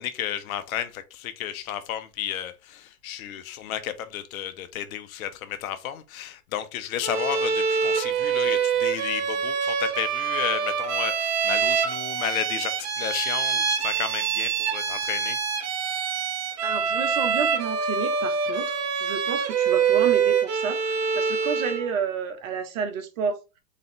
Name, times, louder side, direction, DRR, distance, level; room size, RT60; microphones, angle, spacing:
voice 1, 0.0-15.4, left 10 dB, 70° left, 0.9 m, -32 dB
Bowed string instrument, 7.0-21.9, right 6 dB, 35° right, 1.1 m, -25 dB
voice 2, 16.6-23.4, right 7 dB, 65° right, 1.4 m, -31 dB
4.2 x 3.8 x 3.3 m
hypercardioid pair, 110°, 44 cm